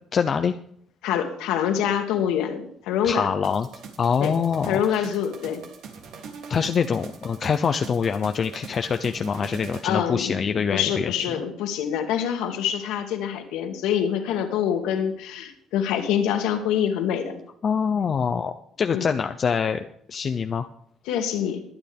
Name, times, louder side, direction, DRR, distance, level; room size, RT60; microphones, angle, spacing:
voice 1, 0.1-0.6 3.0-3.7 4.0-5.1 6.5-11.1 17.6-20.7, left 6 dB, 40° left, 7 dB, 0.6 m, -25 dB
voice 2, 1.0-3.3 4.2-4.3 4.7-5.6 9.8-17.4 18.9-19.1 21.1-21.6, left 9 dB, 90° left, 4 dB, 2.4 m, -25 dB
sound 1, 3.4-9.9, right 6 dB, 75° right, 3.0 m, -42 dB
22.0 x 9.1 x 3.6 m, 0.65 s
cardioid pair, 120°, 0 cm